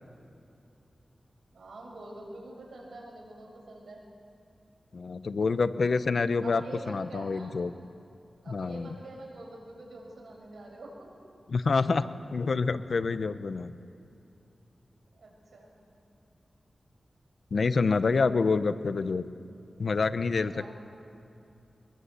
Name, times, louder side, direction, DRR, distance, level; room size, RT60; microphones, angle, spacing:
voice 1, 1.5-4.0 6.4-7.6 8.4-11.1 15.1-15.7 20.5-20.7, right 2 dB, 80° right, -1 dB, 6.6 m, -45 dB
voice 2, 4.9-7.7 8.5-8.9 11.5-12.0 12.3-13.7 17.5-19.2 19.8-20.7, left 4 dB, 65° left, 12 dB, 0.9 m, -27 dB
23.5 x 21.5 x 8.3 m, 2.6 s
wide cardioid pair, 80°, 0 cm